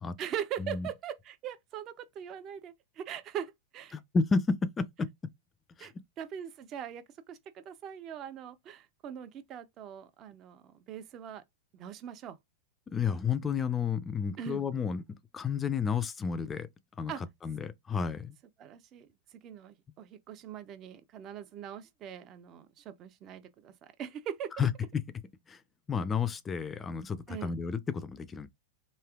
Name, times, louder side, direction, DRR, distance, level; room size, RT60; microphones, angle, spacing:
voice 1, 0.2-4.0 5.8-11.4 11.7-12.4 14.4-14.6 17.1-17.2 18.6-19.1 19.4-24.5 27.3-27.5, right 9 dB, 40° right, 0.6 m, -41 dB
voice 2, 3.9-5.1 5.8-5.9 12.9-16.7 17.0-18.3 24.6-24.7 25.5-25.6 25.9-28.5, left 5 dB, 20° left, 0.4 m, -31 dB
3.2 x 2.6 x 2.4 m
hypercardioid pair, 110°, 0 cm